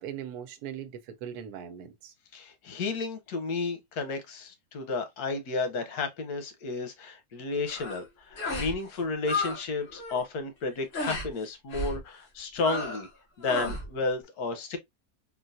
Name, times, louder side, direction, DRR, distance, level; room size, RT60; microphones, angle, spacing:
voice 1, 0.0-2.1, right 9 dB, 85° right, 1.2 m, -40 dB
voice 2, 2.3-13.1 13.4-14.8, left 3 dB, 85° left, 1.4 m, -32 dB
sound 1, 7.7-8.0 8.4-8.8 9.0-9.6 9.9-10.2 10.9-11.3 11.7-12.0 12.6-13.1 13.4-13.9, left 2 dB, 45° left, 1.2 m, -33 dB
3.7 x 2.3 x 2.5 m
omnidirectional pair, 1.6 m